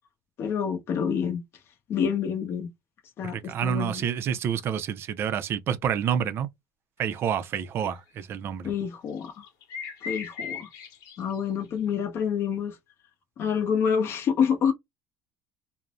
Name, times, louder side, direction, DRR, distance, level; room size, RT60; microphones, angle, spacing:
voice 1, 0.4-1.4 1.9-2.7 3.2-4.0 8.6-9.4 10.0-10.7 11.2-12.8 13.4-14.7, left 7 dB, 40° left, 0.7 m, -27 dB
voice 2, 3.2-6.5 7.0-8.7, right 8 dB, 40° right, 0.4 m, -28 dB
sound 1, 7.0-7.2 7.6-7.8 9.2-11.9, left 6 dB, 70° left, 1.0 m, -38 dB
2.5 x 2.0 x 2.8 m
cardioid pair, 150°, 6 cm